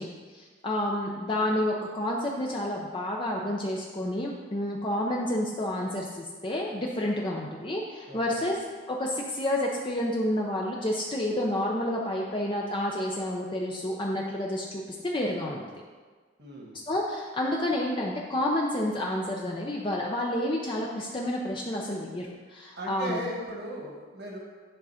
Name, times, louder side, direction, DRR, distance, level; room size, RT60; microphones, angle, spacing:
voice 1, 0.0-8.6 8.9-15.6 16.9-23.2, left 1 dB, 30° left, -2 dB, 0.6 m, -29 dB
voice 2, 8.1-8.4 16.4-16.7 22.8-24.4, right 1 dB, 60° right, -2 dB, 1.6 m, -37 dB
10.0 x 3.9 x 5.7 m, 1.5 s
head